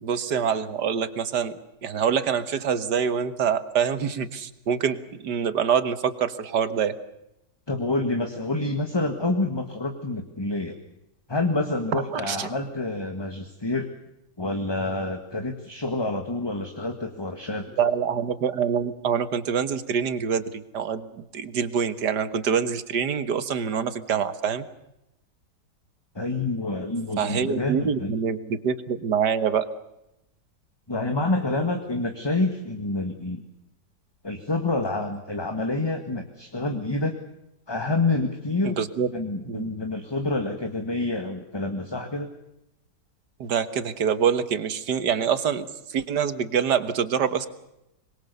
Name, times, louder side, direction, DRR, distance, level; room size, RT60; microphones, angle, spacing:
voice 1, 0.0-7.0 11.9-12.5 17.8-24.7 27.2-29.7 38.6-39.1 39.4-39.7 43.4-47.5, right 7 dB, 75° right, 12 dB, 1.9 m, -25 dB
voice 2, 7.7-10.8 11.3-13.9 14.4-17.7 26.1-28.1 30.9-33.4 34.2-37.2 37.7-38.8 39.1-42.3, left 2 dB, 15° left, 5 dB, 1.6 m, -27 dB
25.5 x 22.0 x 6.8 m, 0.87 s
omnidirectional pair, 1.8 m